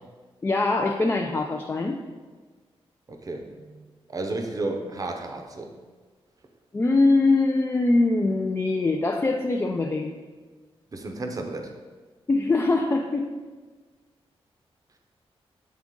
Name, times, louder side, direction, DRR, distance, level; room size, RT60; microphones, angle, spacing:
voice 1, 0.4-2.0 6.7-10.1 12.3-13.3, left 2 dB, 25° left, 1 dB, 0.3 m, -22 dB
voice 2, 3.1-3.8 4.1-5.7 10.9-11.7, right 2 dB, 35° right, 4 dB, 0.7 m, -32 dB
7.4 x 3.5 x 3.7 m, 1.4 s
wide cardioid pair, 125°, 10 cm